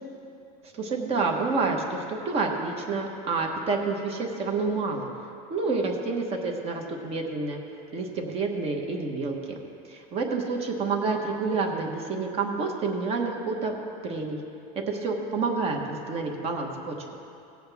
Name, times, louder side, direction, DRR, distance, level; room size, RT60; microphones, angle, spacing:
voice 1, 0.7-5.1 5.5-7.6 7.9-9.6 9.8-13.7 14.0-14.4 14.7-17.0, right 4 dB, 30° right, 2 dB, 1.1 m, -28 dB
17.5 x 7.9 x 3.5 m, 2.7 s
supercardioid pair, 155°, 20 cm